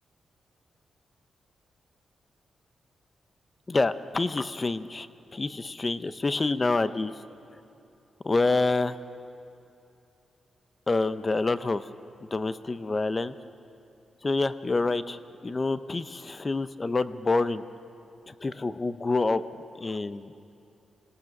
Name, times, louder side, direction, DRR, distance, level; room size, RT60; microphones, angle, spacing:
voice 1, 3.7-5.1 5.3-7.1 8.2-9.0 10.9-11.8 12.3-13.3 14.2-17.6 18.4-19.4 19.8-20.3, left 3 dB, 25° left, 13 dB, 0.7 m, -27 dB
25.5 x 18.0 x 6.0 m, 2.7 s
wide cardioid pair, 120°, 0 cm